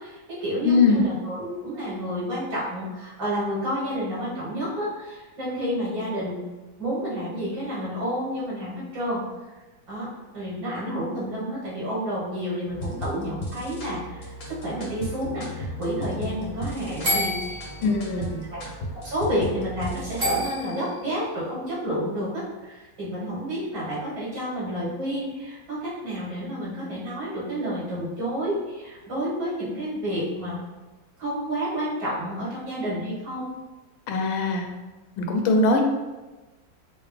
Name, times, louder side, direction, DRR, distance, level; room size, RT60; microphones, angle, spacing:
voice 1, 0.0-6.4 6.8-9.2 9.9-10.1 10.3-18.6 18.9-30.6 31.2-33.5 35.4-35.8, equal, 75° right, -8 dB, 2.4 m, -30 dB
voice 2, 0.6-1.0 17.8-18.5 34.1-34.7 35.2-35.8, left 3 dB, 85° left, 3 dB, 1.4 m, -21 dB
sound 1, 12.7-20.4, equal, 55° left, 0.7 m, -36 dB
sound 2, 17.0-17.9 20.2-21.0, equal, 55° right, 0.5 m, -27 dB
4.6 x 2.0 x 3.3 m, 1.2 s
omnidirectional pair, 2.1 m